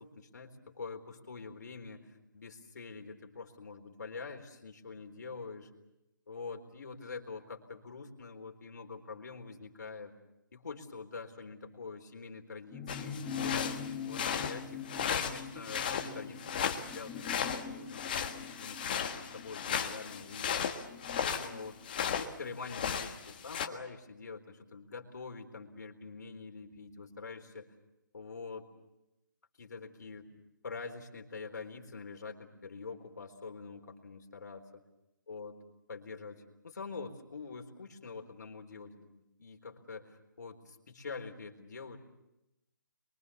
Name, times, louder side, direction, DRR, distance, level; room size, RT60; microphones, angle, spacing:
voice 1, 0.0-5.7 6.3-10.1 10.5-13.8 14.1-14.8 15.1-20.6 21.2-21.8 22.1-27.7 28.1-28.7 29.6-30.3 30.6-34.8 35.3-35.6 35.9-42.0, left 4 dB, 55° left, 4 dB, 4.0 m, -45 dB
sound 1, 12.7-22.5 22.9-23.0, left 6 dB, 10° left, 1.9 m, -44 dB
sound 2, 12.9-22.3 22.6-23.7, left 7 dB, 25° left, 1.5 m, -35 dB
29.0 x 23.5 x 7.2 m, 0.91 s
hypercardioid pair, 175°, 11 cm